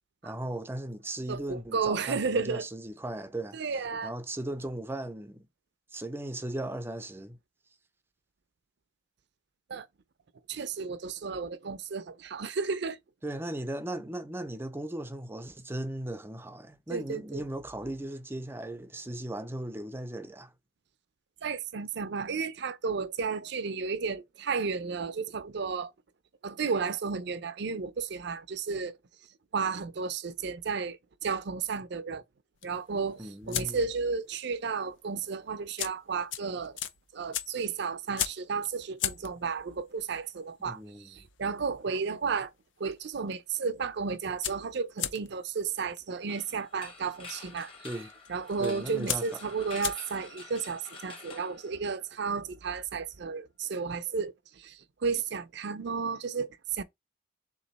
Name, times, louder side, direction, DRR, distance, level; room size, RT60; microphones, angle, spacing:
voice 1, 0.2-3.6 4.0-5.5 5.9-7.4 13.2-20.5 33.2-33.9 40.7-41.3 47.8-48.1 48.6-49.4, right 1 dB, 10° right, 0.4 m, -37 dB
voice 2, 1.3-2.7 3.5-4.1 9.7-9.9 10.5-13.0 16.9-17.5 21.4-25.9 26.4-29.0 29.5-32.2 32.6-36.8 37.1-42.5 42.8-47.7 48.3-56.8, right 5 dB, 60° right, 0.5 m, -33 dB
sound 1, 32.6-34.1 34.4-34.7 34.9-35.0 35.6-42.5 42.8-43.3 43.6-43.7 43.9-50.4, left 10 dB, 80° left, 0.6 m, -37 dB
sound 2, 46.3-52.3, left 3 dB, 30° left, 1.0 m, -48 dB
3.7 x 3.0 x 4.0 m
head